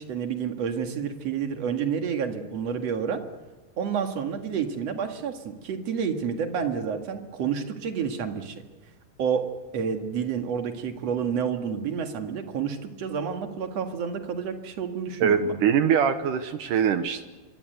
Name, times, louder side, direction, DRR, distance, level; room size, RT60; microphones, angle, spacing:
voice 1, 0.0-3.2 3.8-8.6 9.2-9.5 9.7-15.6, right 7 dB, 50° right, 5 dB, 2.5 m, -29 dB
voice 2, 15.2-17.2, right 7 dB, 70° right, 9 dB, 2.2 m, -23 dB
26.0 x 23.5 x 8.0 m, 1.2 s
omnidirectional pair, 4.7 m